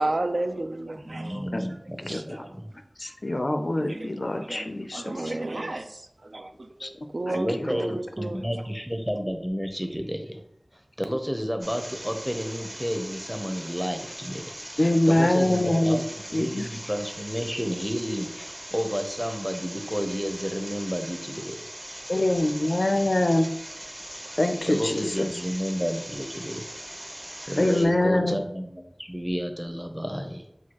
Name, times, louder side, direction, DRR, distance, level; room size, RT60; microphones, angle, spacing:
voice 1, 0.0-1.8 2.1-2.6 3.7-8.5, right 2 dB, 80° right, 7 dB, 0.3 m, -33 dB
voice 2, 1.0-2.7 7.3-10.4 11.0-16.0 16.3-21.6 24.7-26.6 27.4-30.4, equal, 5° right, 5 dB, 0.6 m, -31 dB
voice 3, 3.0-5.0 6.8-6.9 7.3-8.0 14.8-16.0 16.3-16.7 22.1-23.5 24.4-25.3 27.6-28.4, left 1 dB, 70° left, 6 dB, 0.4 m, -24 dB
sound 1, 11.6-27.9, right 1 dB, 40° right, 0.9 m, -40 dB
6.2 x 2.3 x 2.9 m, 0.75 s
wide cardioid pair, 45°, 0 cm